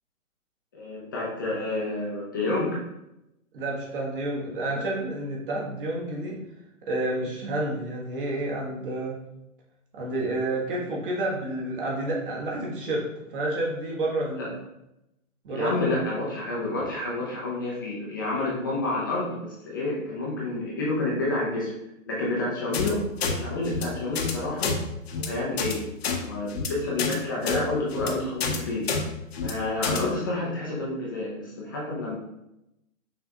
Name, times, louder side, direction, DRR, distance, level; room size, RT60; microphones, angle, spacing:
voice 1, 0.7-2.8 14.4-14.5 15.5-21.7 22.1-24.7 25.1-25.8 26.1-28.9 29.4-32.2, left 2 dB, 15° left, -5 dB, 0.4 m, -29 dB
voice 2, 3.5-6.4 6.9-9.2 9.9-13.0 13.3-14.6 15.4-15.8, right 1 dB, 40° right, -3 dB, 1.4 m, -29 dB
sound 1, 22.7-22.9 23.2-23.3 23.7-23.8 24.2-24.3 24.6-24.8 25.1-25.3 25.6-25.7 26.0-26.2 26.5-26.7 27.0-27.2 27.5-27.6 27.9-28.1 28.4-28.6 28.9-29.0 29.3-29.5 29.8-30.0, left 5 dB, 50° left, 0.8 m, -28 dB
5.7 x 3.3 x 2.8 m, 0.87 s
figure-of-eight pair, 135°, 42 cm